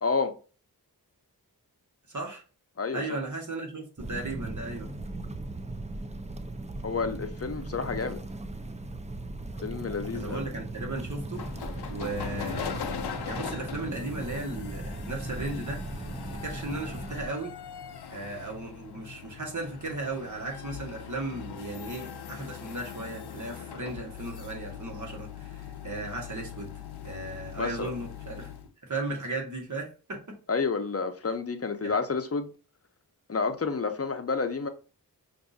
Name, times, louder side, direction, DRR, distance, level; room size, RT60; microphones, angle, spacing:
voice 1, 0.0-0.3 2.8-3.2 6.8-8.3 9.6-10.6 27.6-27.9 30.5-32.5 33.3-34.7, left 4 dB, 40° left, 0.7 m, -30 dB
voice 2, 2.1-2.4 2.9-4.9 10.1-11.4 11.9-12.9 13.2-15.8 16.4-17.6 18.1-28.5 28.8-30.4 31.8-31.9, right 2 dB, 50° right, 1.6 m, -36 dB
sound 1, 4.0-17.3, right 2 dB, 20° right, 0.5 m, -38 dB
sound 2, 11.3-28.7, left 8 dB, 85° left, 0.6 m, -41 dB
5.7 x 2.7 x 2.7 m
wide cardioid pair, 55°, 38 cm